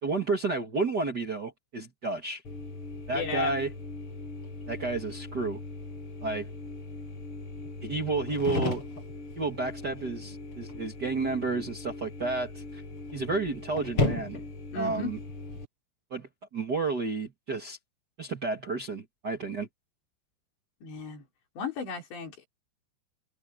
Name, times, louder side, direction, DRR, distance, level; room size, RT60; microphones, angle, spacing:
voice 1, 0.0-2.4 3.1-3.7 4.7-5.6 6.2-6.5 7.8-8.8 9.3-12.8 13.1-14.4 14.7-15.2 16.1-17.8 18.2-19.7, right 3 dB, 75° right, 0.9 m, -31 dB
sound 1, 2.4-15.7, left 2 dB, 30° left, 8.0 m, -37 dB
voice 2, 3.1-3.5 14.7-15.2 20.8-21.2 21.6-22.5, left 4 dB, 65° left, 7.5 m, -35 dB
omnidirectional pair, 5.4 m